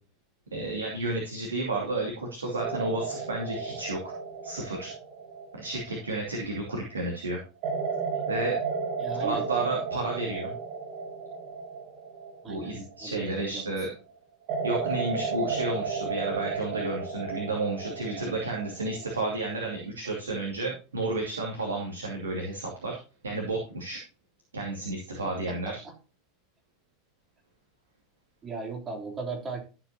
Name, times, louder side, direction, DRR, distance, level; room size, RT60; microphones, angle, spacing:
voice 1, 0.5-4.1 4.4-4.9 5.6-7.4 8.3-8.6 9.2-10.5 12.5-13.9 14.6-23.0 23.2-24.0 24.5-25.7, right 2 dB, 75° right, -2 dB, 2.6 m, -31 dB
sound 1, 2.6-6.8 7.6-13.6 14.5-19.8, right 5 dB, 50° right, 2.4 m, -34 dB
voice 2, 9.0-9.5 12.4-13.8 25.5-25.9 28.4-29.6, right 4 dB, 25° right, 0 dB, 3.4 m, -37 dB
13.0 x 8.0 x 2.9 m, 0.33 s
figure-of-eight pair, 80°, 0 cm